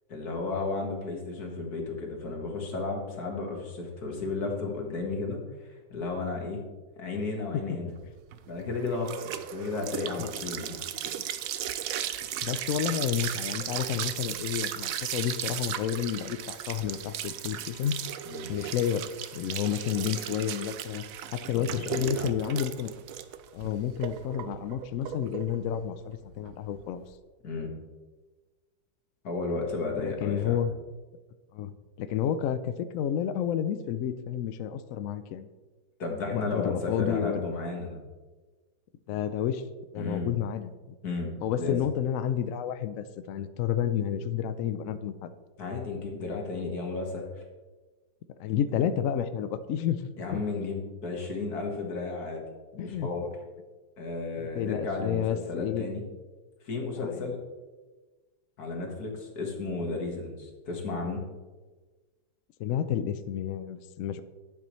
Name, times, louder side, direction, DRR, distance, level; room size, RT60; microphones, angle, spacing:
voice 1, 0.1-6.6 7.0-7.9 8.5-9.2 9.5-10.8 18.3-18.5 21.5-22.3 27.4-27.7 29.2-30.6 36.0-38.0 40.0-40.3 41.0-41.8 45.6-47.3 50.2-52.4 52.7-53.3 54.0-56.0 56.6-57.4 58.6-61.2, left 3 dB, 60° left, 1 dB, 2.1 m, -33 dB
sound 1, 8.1-27.1, right 10 dB, 70° right, 0.8 m, -36 dB
voice 2, 12.4-18.0 18.5-19.1 19.3-21.0 21.3-22.9 23.5-27.0 30.0-30.7 31.5-35.5 36.3-37.4 39.1-39.6 39.9-41.0 41.4-45.3 48.4-50.4 52.8-53.1 54.4-55.9 57.0-57.4 62.6-64.2, left 9 dB, 75° left, 11 dB, 0.7 m, -30 dB
12.0 x 8.3 x 3.1 m, 1.3 s
omnidirectional pair, 1.9 m